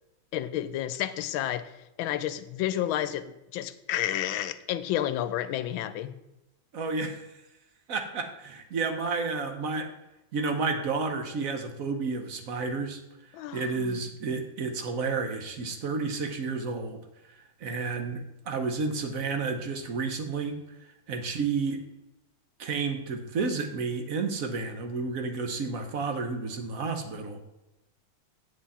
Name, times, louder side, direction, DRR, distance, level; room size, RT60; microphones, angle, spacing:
voice 1, 0.3-1.7 2.0-3.3 3.5-6.1 13.3-14.0, left 12 dB, 80° left, 13 dB, 1.4 m, -30 dB
voice 2, 6.7-7.3 7.9-9.9 10.3-17.0 17.6-20.6 21.1-21.8 22.6-27.4, right 4 dB, 55° right, 6 dB, 1.1 m, -31 dB
8.0 x 7.7 x 4.1 m, 0.94 s
omnidirectional pair, 2.2 m